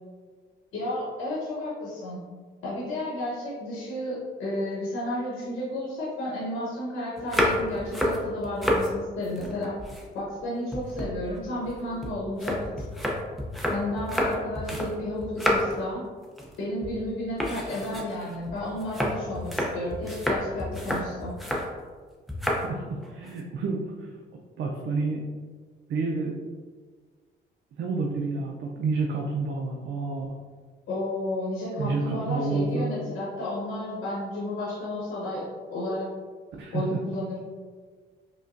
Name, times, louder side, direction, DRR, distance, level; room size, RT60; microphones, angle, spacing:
voice 1, 0.7-2.2 2.6-9.7 10.1-12.6 13.7-16.0 16.6-21.3 30.9-36.1 36.7-37.4, left 1 dB, 85° left, -7 dB, 1.1 m, -32 dB
sound 1, 7.2-8.9 9.2-10.4 10.7-14.9 15.2-15.9 16.2-16.6 16.8-17.0 17.4-21.7 22.3-22.7 23.0-23.4, equal, ahead, 0.6 m, -29 dB
voice 2, 22.6-24.2 24.6-25.2 25.9-26.4 27.8-30.4 31.8-32.9 36.6-37.0, right 3 dB, 70° right, 0 dB, 0.5 m, -29 dB
4.9 x 2.2 x 2.6 m, 1.5 s
cardioid pair, 90°, 20 cm